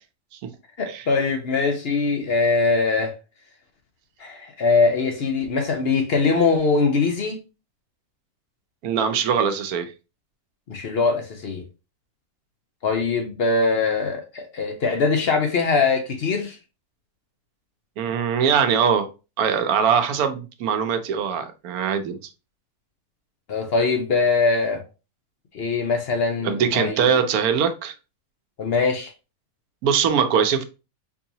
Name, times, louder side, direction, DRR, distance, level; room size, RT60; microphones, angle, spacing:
voice 1, 0.8-3.1 4.2-7.4 10.7-11.6 12.8-16.6 23.5-24.8 25.5-27.1 28.6-29.1, left 4 dB, 55° left, 0.7 m, -22 dB
voice 2, 8.8-9.9 18.0-19.1 19.4-22.2 26.4-27.9 29.8-30.6, right 7 dB, 90° right, 1.1 m, -22 dB
4.5 x 2.7 x 2.7 m
omnidirectional pair, 1.5 m